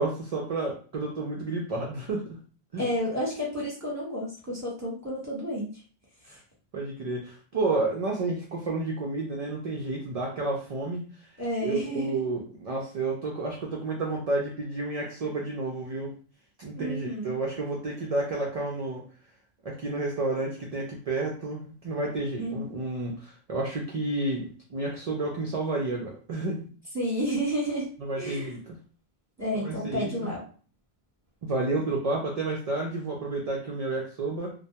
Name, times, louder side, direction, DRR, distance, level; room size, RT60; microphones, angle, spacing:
voice 1, 0.0-2.4 2.7-2.9 6.3-6.4 6.7-11.0 11.6-16.1 16.6-19.0 19.6-26.7 28.0-28.8 29.5-30.3 31.4-34.5, right 2 dB, 55° right, -1 dB, 0.4 m, -31 dB
voice 2, 2.8-5.8 6.3-6.4 11.4-12.2 16.7-17.4 22.4-22.7 26.9-27.9 28.2-28.6 29.4-30.4, equal, 15° right, -5 dB, 0.9 m, -31 dB
2.2 x 2.1 x 2.7 m, 0.41 s
omnidirectional pair, 1.1 m